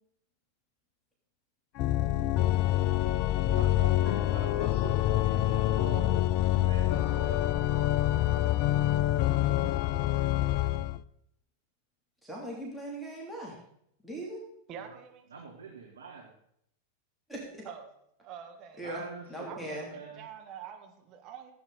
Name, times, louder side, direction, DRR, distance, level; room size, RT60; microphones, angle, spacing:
Organ, 1.8-11.0, left 13 dB, 45° left, 0.4 m, -26 dB
voice 1, 3.4-6.2 6.5-7.4 14.8-15.0 15.3-16.3 18.8-20.3, right 5 dB, 70° right, 1 dB, 1.5 m, -45 dB
voice 2, 12.2-13.6 14.0-14.4 17.3-17.6 18.8-19.0 19.3-19.9, right 1 dB, ahead, -3 dB, 3.0 m, -39 dB
voice 3, 14.7-15.2 17.6-17.9 18.2-18.8 19.5-19.6 19.9-21.5, right 8 dB, 35° right, 3 dB, 1.9 m, -45 dB
15.5 x 8.6 x 4.1 m, 0.72 s
figure-of-eight pair, 90°, 0 cm